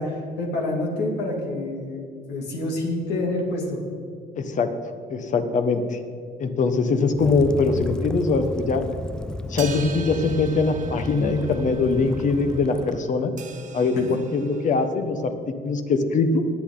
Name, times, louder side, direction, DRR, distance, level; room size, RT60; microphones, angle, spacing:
voice 1, 0.0-3.8, left 2 dB, 85° left, 0 dB, 2.7 m, -27 dB
voice 2, 4.4-4.7 5.1-6.0 6.4-8.9 9.5-13.3 13.7-15.3 15.6-16.4, left 4 dB, 45° left, 8 dB, 1.2 m, -22 dB
Waves surf / Splash splatter / Trickle dribble, 7.2-13.0, left 1 dB, 5° left, 0.4 m, -33 dB
sound 1, 9.6-14.9, right 6 dB, 50° right, 1.3 m, -42 dB
20.0 x 8.5 x 4.0 m, 2.3 s
cardioid pair, 110°, 17 cm